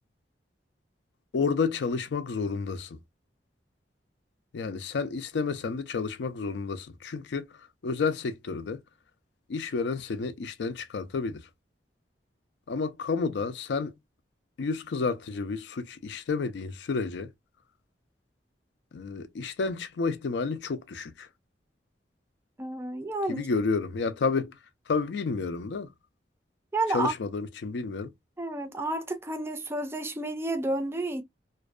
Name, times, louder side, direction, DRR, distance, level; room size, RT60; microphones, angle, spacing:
voice 1, 1.3-3.0 4.5-7.5 7.8-8.8 9.5-11.4 12.7-13.9 14.6-17.3 18.9-21.3 23.3-24.5 24.9-25.9 26.9-28.1, left 4 dB, 70° left, 0.4 m, -30 dB
voice 2, 22.6-23.5 26.7-27.1 28.4-31.2, right 2 dB, 15° right, 0.4 m, -30 dB
2.5 x 2.1 x 2.3 m
head